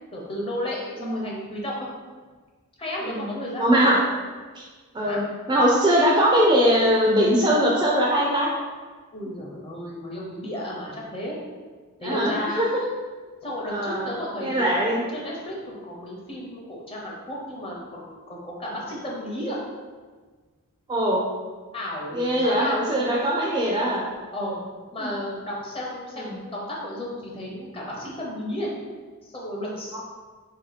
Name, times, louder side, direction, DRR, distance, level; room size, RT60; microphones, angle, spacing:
voice 1, 0.1-1.9 2.8-3.9 5.1-5.2 9.1-11.4 12.0-12.6 13.4-19.6 21.7-22.9 24.3-24.6 24.9-28.7 29.2-30.0, left 1 dB, 25° left, -3 dB, 0.7 m, -33 dB
voice 2, 1.0-1.3 3.0-3.3 3.6-4.0 4.6-4.7 4.9-5.2 5.5-8.5 12.0-12.8 13.7-14.1 14.4-15.0 20.9-21.2 22.1-24.1 25.0-25.1 26.2-26.4 29.9-30.0, equal, 20° right, -3 dB, 0.4 m, -21 dB
2.8 x 2.8 x 4.0 m, 1.4 s
head